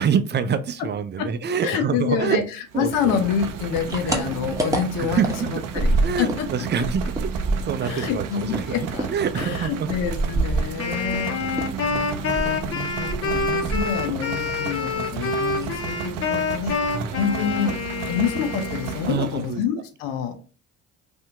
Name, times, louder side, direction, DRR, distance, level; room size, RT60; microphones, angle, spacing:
voice 1, 0.0-2.4 2.7-3.2 4.0-4.2 5.0-5.6 6.0-7.1 7.6-8.8 9.1-9.9 11.0-11.9 15.2-15.4 16.9-17.2 19.1-19.6, right 7 dB, 35° right, 11 dB, 0.5 m, -26 dB
voice 2, 1.6-2.4 2.8-6.5 7.8-9.1 9.4-11.4 11.9-16.8 17.2-17.7 18.1-20.3, left 7 dB, 80° left, 6 dB, 0.7 m, -27 dB
sound 1, 2.7-19.6, right 8 dB, 75° right, 0.5 m, -34 dB
sound 2, 3.4-6.5 6.7-11.2 11.5-14.3 14.6-15.3 15.6-15.8 16.1-16.2 16.5-17.1, right 2 dB, 10° right, 0.9 m, -27 dB
Wind instrument woodwind instrument, 10.8-19.2, left 4 dB, 45° left, 0.8 m, -27 dB
2.8 x 2.6 x 3.4 m, 0.36 s
supercardioid pair, 70°, 32 cm